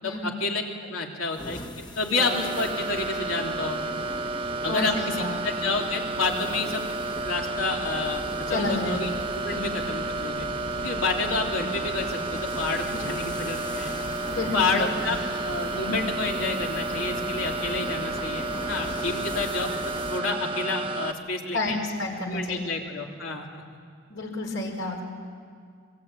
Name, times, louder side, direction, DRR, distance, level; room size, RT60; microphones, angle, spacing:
voice 1, 0.0-1.6 2.0-4.0 4.6-6.9 7.2-10.5 10.8-13.9 14.5-15.2 15.4-21.8 22.3-23.6, left 3 dB, 85° left, 1 dB, 3.3 m, -29 dB
sound 1, 1.3-20.2, left 1 dB, 20° left, 1.1 m, -40 dB
sound 2, 2.2-21.1, right 3 dB, 25° right, 1.0 m, -31 dB
voice 2, 4.7-5.6 8.5-9.1 9.5-9.7 14.3-15.1 21.5-22.7 24.1-25.0, left 2 dB, 70° left, 1 dB, 4.7 m, -30 dB
27.0 x 22.5 x 9.0 m, 2.1 s
head